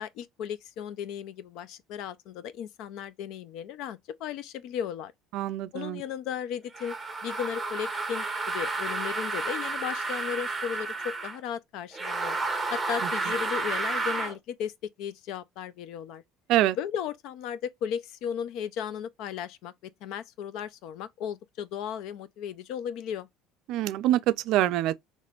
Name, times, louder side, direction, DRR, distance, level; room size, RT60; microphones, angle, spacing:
voice 1, 0.0-5.1 5.7-7.0 7.2-12.4 12.7-14.7 15.0-16.2 16.8-19.7 20.0-23.3, left 8 dB, 60° left, 0.5 m, -35 dB
voice 2, 5.3-6.0 16.5-16.8 23.7-24.9, right 14 dB, 60° right, 0.4 m, -25 dB
sound 1, 6.7-11.4 11.9-14.4, right 3 dB, 5° right, 0.9 m, -31 dB
4.2 x 3.0 x 2.4 m
cardioid pair, 155°, 0 cm